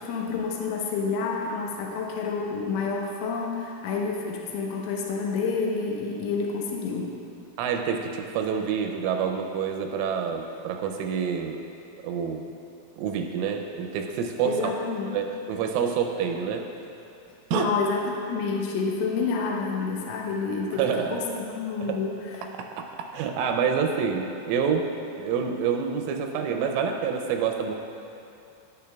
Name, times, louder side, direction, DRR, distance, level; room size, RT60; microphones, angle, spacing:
voice 1, 0.0-7.1 14.4-15.2 17.5-20.8 21.1-22.5, left 4 dB, 80° left, -1 dB, 3.3 m, -29 dB
voice 2, 7.6-11.6 12.0-12.5 13.0-14.7 15.1-16.6 17.5-17.7 20.7-21.2 21.8-22.0 22.6-24.9 25.2-27.7, right 6 dB, 85° right, 3 dB, 3.0 m, -27 dB
10.5 x 10.0 x 2.3 m, 2.6 s
omnidirectional pair, 5.8 m